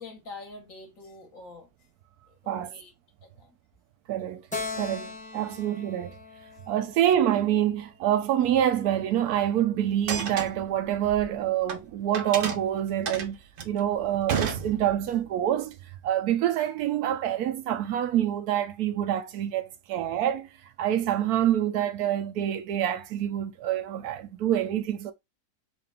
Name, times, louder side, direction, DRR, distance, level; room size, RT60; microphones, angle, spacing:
voice 1, 0.0-1.7 2.3-2.9 3.2-3.5, left 3 dB, 60° left, 1.7 m, -45 dB
voice 2, 4.1-4.4 4.7-6.2 6.7-13.4 13.6-15.8 16.0-20.5 20.8-25.1, right 11 dB, 80° right, 1.2 m, -26 dB
Keyboard (musical), 4.5-8.0, left 4 dB, 10° left, 0.6 m, -39 dB
sound 1, 9.9-11.8 12.1-15.2, right 6 dB, 55° right, 0.6 m, -32 dB
4.8 x 2.5 x 3.4 m
omnidirectional pair, 1.6 m